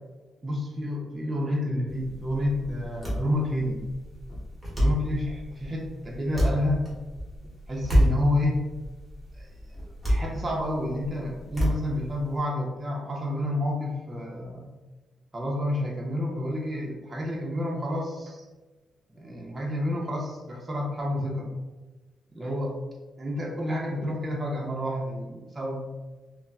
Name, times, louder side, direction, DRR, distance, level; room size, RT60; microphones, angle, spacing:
voice 1, 0.4-3.8 4.8-6.8 7.7-8.6 9.3-9.5 10.0-14.6 15.3-18.4 19.1-21.5 22.4-22.7 23.2-25.8, left 1 dB, 15° right, -3 dB, 0.3 m, -29 dB
sound 1, 1.9-12.4, equal, 5° left, 0.8 m, -29 dB
2.3 x 2.0 x 3.4 m, 1.2 s
cardioid pair, 175°, 0 cm